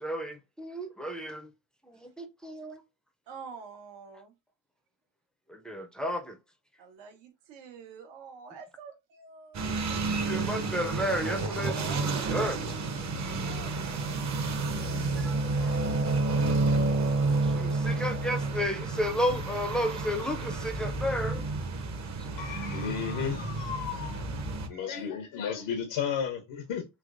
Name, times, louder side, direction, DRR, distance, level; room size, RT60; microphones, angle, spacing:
voice 1, 0.0-1.5 1.9-2.8 5.5-6.4 10.1-11.7 12.3-12.6 12.9-13.0 14.6-14.7 15.2-15.7 17.4-21.5, equal, ahead, 0.5 m, -32 dB
voice 2, 3.3-4.3 6.8-9.9 11.5-12.2 13.4-14.3 22.0-22.1 24.9-25.1, right 5 dB, 75° right, 1.2 m, -47 dB
sound 1, 9.5-24.7, right 3 dB, 40° right, 0.9 m, -30 dB
voice 3, 22.4-24.2 24.7-26.9, left 7 dB, 75° left, 0.9 m, -33 dB
3.3 x 3.0 x 2.5 m
supercardioid pair, 90°, 44 cm